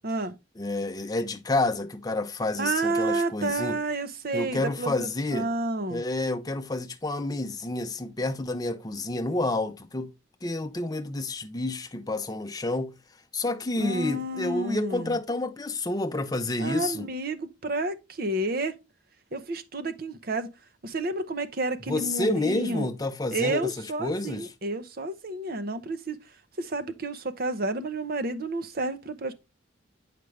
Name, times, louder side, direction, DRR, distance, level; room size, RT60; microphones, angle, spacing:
voice 1, 0.0-0.3 2.6-6.0 13.8-15.2 16.6-18.7 19.3-20.5 20.8-22.9 23.3-26.2 26.6-29.3, right 2 dB, 50° right, 0.7 m, -30 dB
voice 2, 0.6-3.8 4.3-5.5 5.9-10.1 10.4-12.9 13.3-17.1 21.9-24.5, left 2 dB, 20° left, 0.6 m, -29 dB
8.2 x 5.0 x 3.2 m
head